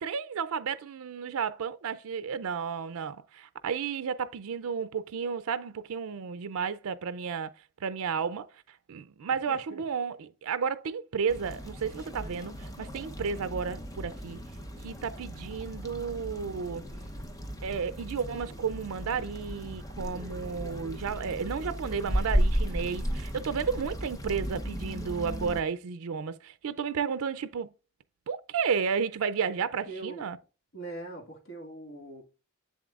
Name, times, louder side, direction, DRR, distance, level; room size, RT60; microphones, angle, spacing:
voice 1, 0.0-7.5 7.8-14.4 14.8-16.8 17.6-27.7 28.3-30.4, right 6 dB, 80° right, 0.4 m, -32 dB
voice 2, 9.3-9.8 29.6-30.3 30.7-32.2, right 2 dB, 65° left, 1.8 m, -42 dB
sound 1, 11.3-25.6, equal, 15° left, 0.7 m, -35 dB
7.5 x 7.2 x 2.4 m
head